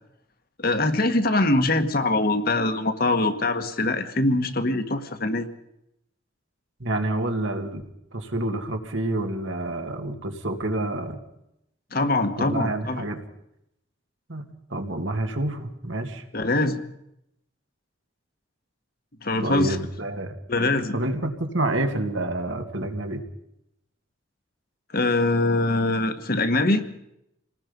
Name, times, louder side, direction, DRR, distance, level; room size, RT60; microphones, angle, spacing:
voice 1, 0.6-5.5 11.9-13.0 16.3-16.8 19.2-19.8 20.5-21.0 24.9-26.9, left 2 dB, 45° left, 7 dB, 1.6 m, -23 dB
voice 2, 6.8-7.8 8.1-11.2 12.4-13.2 14.3-14.4 14.7-16.2 19.4-20.4 20.9-23.2, right 1 dB, 70° right, 5 dB, 2.5 m, -28 dB
27.5 x 19.0 x 5.4 m, 0.82 s
head